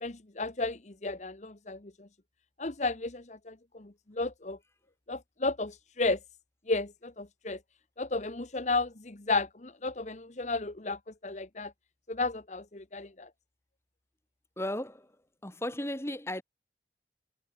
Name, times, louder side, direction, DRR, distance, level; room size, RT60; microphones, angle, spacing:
voice 1, 0.0-1.8 2.6-4.6 5.1-6.2 6.7-7.6 8.0-11.7 12.1-13.3, left 3 dB, 40° left, 1.2 m, -33 dB
voice 2, 14.6-15.1 15.4-16.4, left 1 dB, 15° left, 3.6 m, -35 dB
head